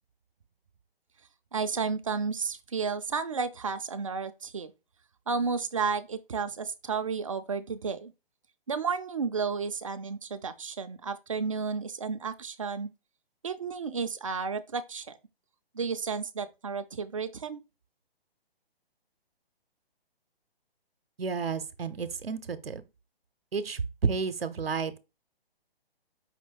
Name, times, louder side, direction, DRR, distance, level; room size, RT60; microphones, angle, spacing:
voice 1, 1.5-4.7 5.3-8.1 8.7-12.9 13.4-15.2 15.7-17.6, right 5 dB, 35° right, 0.4 m, -32 dB
voice 2, 21.2-22.8 23.5-25.0, right 5 dB, 75° right, 0.7 m, -31 dB
5.0 x 2.7 x 3.7 m
figure-of-eight pair, 135°, 30 cm